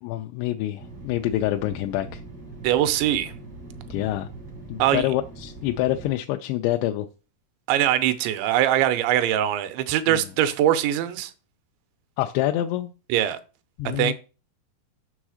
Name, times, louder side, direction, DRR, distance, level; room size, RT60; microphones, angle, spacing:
voice 1, 0.0-2.2 3.9-4.3 4.7-7.1 10.1-10.2 12.2-12.9 13.8-14.1, left 14 dB, 90° left, 2.9 m, -26 dB
sound 1, 0.8-6.1, right 3 dB, 70° right, 0.9 m, -41 dB
voice 2, 2.6-3.3 4.8-5.0 7.7-11.3 13.1-13.4 13.9-14.1, right 12 dB, 85° right, 3.0 m, -22 dB
7.2 x 6.2 x 4.9 m
omnidirectional pair, 5.1 m